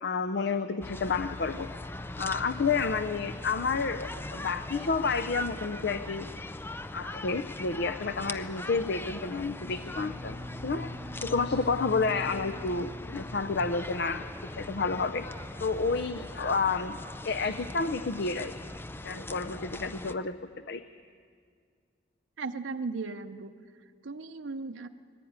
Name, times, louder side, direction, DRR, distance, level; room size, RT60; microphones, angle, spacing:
voice 1, 0.0-1.7 2.2-6.3 6.9-10.9 11.2-15.3 15.6-17.0 17.2-18.5 19.0-20.4 20.7-20.8, left 4 dB, 60° left, 11 dB, 0.6 m, -30 dB
sound 1, 0.8-20.1, left 2 dB, 10° left, 0.5 m, -40 dB
Bowed string instrument, 9.4-14.1, left 1 dB, 10° right, 2.8 m, -44 dB
voice 2, 22.4-23.5 24.0-24.9, right 4 dB, 85° right, 6 dB, 0.7 m, -36 dB
20.5 x 15.0 x 9.5 m, 2.1 s
head